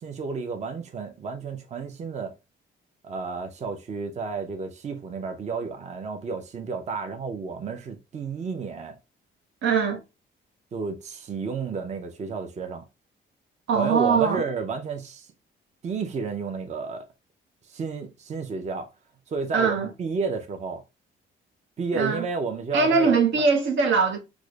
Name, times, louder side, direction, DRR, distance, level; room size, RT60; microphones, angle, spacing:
voice 1, 0.0-2.3 3.0-9.0 10.7-12.8 13.7-15.3 15.8-17.0 17.7-18.9 19.3-20.8 21.8-23.2, right 5 dB, 35° right, 0.5 m, -31 dB
voice 2, 9.6-10.0 13.7-14.4 19.5-19.9 21.9-22.2 22.7-24.2, right 5 dB, 75° right, 0.8 m, -21 dB
4.8 x 2.1 x 2.3 m
cardioid pair, 90°, 20 cm